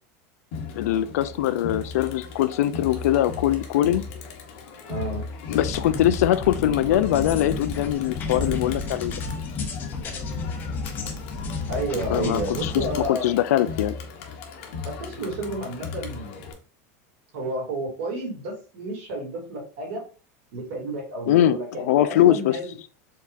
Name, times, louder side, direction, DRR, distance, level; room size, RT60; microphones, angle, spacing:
Crowd, 0.5-16.5, left 4 dB, 50° left, 0.9 m, -37 dB
voice 1, 0.8-4.1 5.5-9.1 12.1-13.9 21.3-22.6, left 12 dB, 85° left, 0.4 m, -22 dB
voice 2, 4.9-5.2 11.7-13.3 14.8-16.5 17.3-20.0 20.5-22.7, right 1 dB, 55° right, 2.2 m, -31 dB
sound 1, 5.5-13.1, left 4 dB, 25° left, 0.6 m, -32 dB
4.7 x 3.5 x 2.5 m
supercardioid pair, 170°, 8 cm